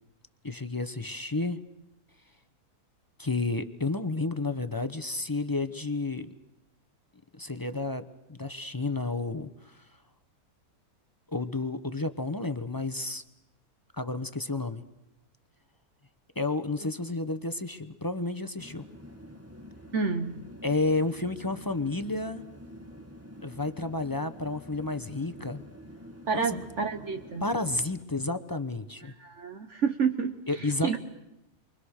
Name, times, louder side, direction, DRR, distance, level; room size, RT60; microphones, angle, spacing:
voice 1, 0.4-1.6 3.2-6.3 7.4-9.8 11.3-13.2 13.9-14.8 16.4-18.9 20.6-22.4 23.4-25.6 26.3-26.5 27.4-29.1 30.5-31.0, left 2 dB, 20° left, 9 dB, 0.7 m, -31 dB
sound 1, 18.6-28.0, equal, 10° right, 1.5 m, -47 dB
voice 2, 19.9-20.3 26.3-27.5 29.0-31.0, right 5 dB, 55° right, 6 dB, 1.4 m, -29 dB
30.0 x 24.0 x 6.5 m, 0.87 s
omnidirectional pair, 1.6 m